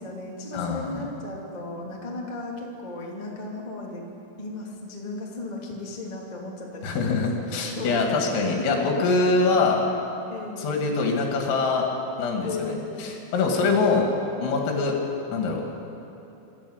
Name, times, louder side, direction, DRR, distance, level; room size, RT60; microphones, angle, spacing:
voice 1, 0.0-4.0 4.4-8.9 10.3-10.8 12.4-12.9 13.4-14.1, left 2 dB, 20° left, -2 dB, 1.2 m, -36 dB
voice 2, 0.5-1.1 6.8-9.8 10.6-11.9 12.2-14.1 14.4-14.9 15.3-15.6, left 4 dB, 80° left, 1 dB, 5.0 m, -24 dB
27.0 x 12.5 x 8.1 m, 2.9 s
omnidirectional pair, 6.0 m